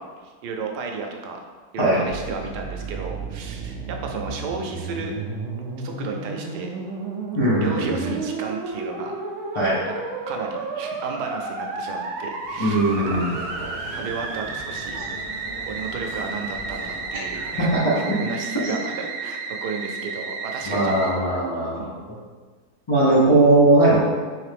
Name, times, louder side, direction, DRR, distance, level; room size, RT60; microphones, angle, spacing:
voice 1, 0.0-1.4 1.7-5.1 5.8-6.8 7.5-9.2 10.3-12.8 13.2-13.3 13.9-15.0 15.7-21.2 21.7-22.0, right 4 dB, 90° right, 2 dB, 1.2 m, -33 dB
Musical instrument, 2.0-21.1, right 4 dB, 70° right, 0.7 m, -32 dB
voice 2, 7.4-8.1 9.5-9.8 12.6-13.3 17.6-18.2 18.6-18.7 20.7-22.2 22.9-24.0, right 2 dB, 35° left, -9 dB, 0.4 m, -19 dB
sound 1, 12.4-17.8, right 1 dB, 25° right, 0.5 m, -39 dB
3.5 x 3.2 x 3.3 m, 1.4 s
omnidirectional pair, 1.7 m